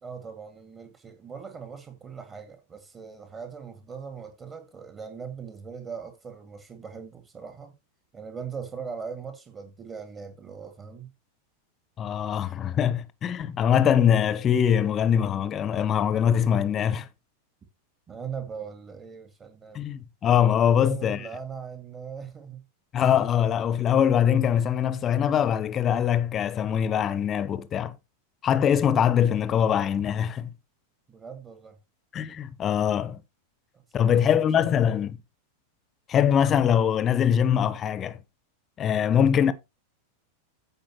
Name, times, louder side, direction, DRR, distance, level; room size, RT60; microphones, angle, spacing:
voice 1, 0.0-7.7 8.1-11.1 18.1-19.8 20.6-22.6 31.1-31.8 33.7-35.0, right 6 dB, 20° right, 2.0 m, -40 dB
voice 2, 12.0-17.1 19.7-21.2 22.9-27.9 28.4-30.5 32.1-33.2 33.9-35.1 36.1-38.2 38.8-39.5, left 9 dB, 25° left, 1.0 m, -23 dB
15.0 x 5.3 x 3.0 m
figure-of-eight pair, 90°, 0 cm